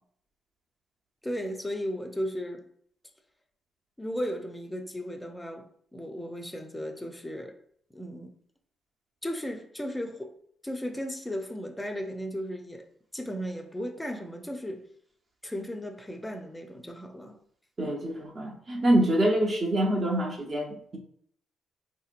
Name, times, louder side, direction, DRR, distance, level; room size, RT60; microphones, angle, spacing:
voice 1, 1.2-2.6 4.0-7.6 7.9-8.3 9.2-10.4 10.6-12.9 13.1-14.8 15.4-17.4, equal, 10° left, 0.5 m, -35 dB
voice 2, 17.8-21.0, right 1 dB, 35° right, 0.7 m, -25 dB
3.6 x 2.8 x 2.5 m
cardioid pair, 90°, 0 cm